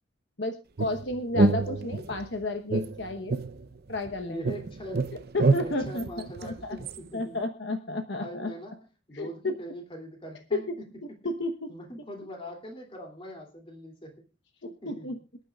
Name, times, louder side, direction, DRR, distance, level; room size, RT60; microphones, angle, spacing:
voice 1, 0.4-3.4 3.9-4.5 5.3-6.8 7.1-8.5 9.1-9.5 11.0-11.7 14.6-15.2, left 2 dB, 60° left, 5 dB, 1.1 m, -32 dB
sound 1, 0.8-2.2 2.7-4.1 4.4-7.0, right 3 dB, 50° right, 0.7 m, -27 dB
voice 2, 4.3-5.2 5.6-7.4 8.1-10.9 11.7-14.3 14.8-15.1, equal, 25° left, 2 dB, 2.9 m, -42 dB
27.5 x 9.3 x 2.4 m, 0.31 s
head